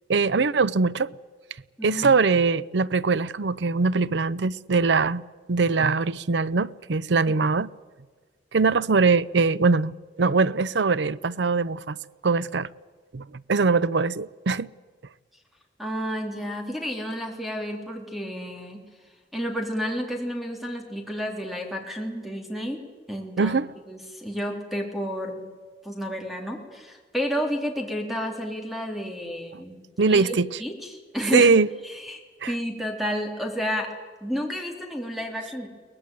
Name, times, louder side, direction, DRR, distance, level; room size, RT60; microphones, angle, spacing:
voice 1, 0.1-1.1 1.8-5.2 5.5-7.7 8.5-12.0 12.2-12.7 13.1-14.7 23.4-23.7 29.5-29.6 30.0-30.6 31.3-31.7 32.4-32.5, right 4 dB, 85° right, 0.6 m, -22 dB
voice 2, 15.8-18.8 19.3-22.8 23.1-23.6 23.9-25.5 25.8-31.5 31.8-32.2 32.5-33.9 34.2-35.7, equal, ahead, 3.5 m, -31 dB
23.0 x 18.5 x 9.2 m
head